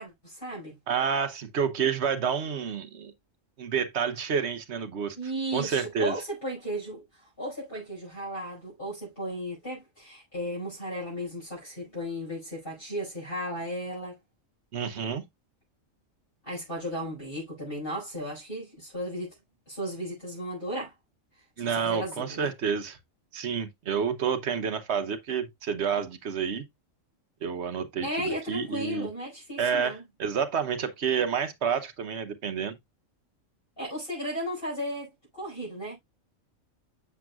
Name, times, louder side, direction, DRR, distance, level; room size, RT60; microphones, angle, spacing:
voice 1, 0.0-0.8 5.2-7.0 7.4-14.2 16.5-19.3 19.7-20.9 21.6-22.5 28.0-30.0 33.8-36.0, equal, 40° left, 5.7 m, -35 dB
voice 2, 0.9-3.1 3.6-5.2 5.5-6.2 14.7-15.2 21.6-23.0 23.3-26.6 27.4-29.1 29.6-32.7, right 7 dB, 60° right, 1.1 m, -29 dB
7.4 x 6.9 x 2.3 m
omnidirectional pair, 1.4 m